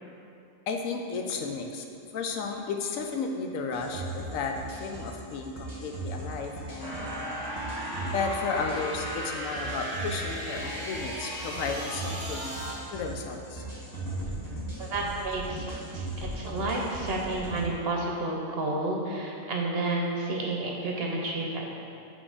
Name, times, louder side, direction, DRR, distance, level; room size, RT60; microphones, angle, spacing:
voice 1, 0.7-1.8 2.1-7.5 8.1-12.5 12.9-13.6, left 4 dB, 75° left, 3 dB, 1.0 m, -33 dB
sound 1, 3.7-17.6, right 1 dB, 15° left, 1.3 m, -38 dB
sound 2, 6.8-12.7, right 1 dB, 15° right, 1.6 m, -36 dB
voice 2, 14.8-21.7, right 2 dB, 55° right, -1 dB, 0.8 m, -31 dB
7.4 x 3.7 x 4.8 m, 2.6 s
omnidirectional pair, 1.4 m